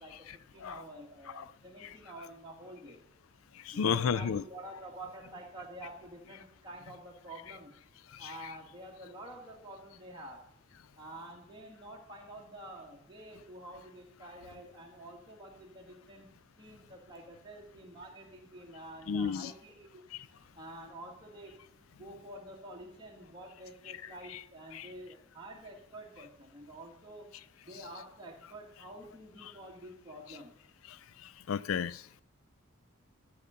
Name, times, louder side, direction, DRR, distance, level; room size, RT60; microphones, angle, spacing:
voice 1, 0.0-3.1 3.7-7.7 8.2-10.4 11.0-16.3 16.6-20.0 20.5-21.6 21.9-27.3 27.6-30.5, right 1 dB, 20° right, 1.8 m, -48 dB
voice 2, 3.8-4.4 19.1-19.5 24.7-24.9 31.5-31.9, left 6 dB, 85° left, 0.4 m, -30 dB
12.5 x 5.0 x 5.6 m
head